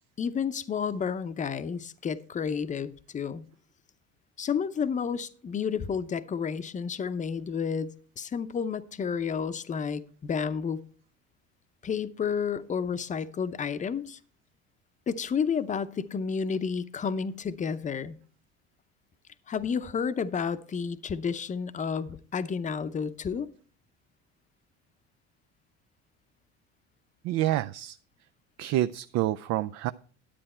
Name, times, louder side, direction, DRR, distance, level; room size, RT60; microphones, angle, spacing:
voice 1, 0.2-3.4 4.4-10.8 11.8-14.2 15.1-18.2 19.5-23.5, left 6 dB, 25° left, 13 dB, 0.6 m, -31 dB
voice 2, 27.2-28.0 28.6-29.9, right 14 dB, 60° right, 11 dB, 0.4 m, -28 dB
10.5 x 8.7 x 4.3 m, 0.42 s
cardioid pair, 120°, 31 cm